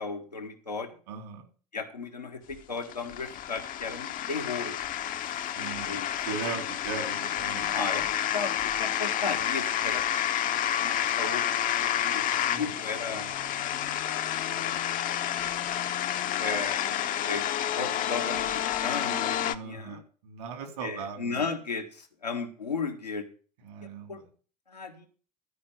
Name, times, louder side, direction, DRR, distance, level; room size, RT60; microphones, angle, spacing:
voice 1, 0.0-1.0 1.7-4.8 5.8-6.1 7.6-10.1 10.8-11.5 11.8-13.3 14.4-14.8 16.4-17.5 17.7-20.0 20.8-23.3 24.1-24.2 24.7-25.1, left 4 dB, 85° left, 2 dB, 1.7 m, -35 dB
voice 2, 1.1-1.5 5.5-5.9 6.2-7.6 12.5-12.7 13.1-13.3 19.4-21.5 23.6-24.2, right 5 dB, 65° right, 4 dB, 3.4 m, -38 dB
sound 1, 2.5-19.6, left 11 dB, 40° left, 0.9 m, -30 dB
13.0 x 5.2 x 8.4 m, 0.40 s
figure-of-eight pair, 65°, 21 cm